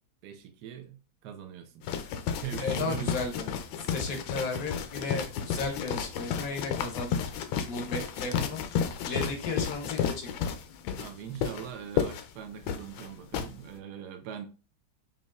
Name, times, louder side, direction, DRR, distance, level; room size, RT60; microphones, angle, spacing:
voice 1, 0.2-1.8 2.4-3.1 11.0-14.5, right 9 dB, 70° right, 1.1 m, -41 dB
sound 1, 1.8-13.5, left 7 dB, 80° left, 1.3 m, -32 dB
voice 2, 2.6-3.5 3.8-7.3 7.6-8.6 9.0-10.5, left 3 dB, 60° left, 0.9 m, -35 dB
5.2 x 2.7 x 2.3 m
omnidirectional pair, 2.1 m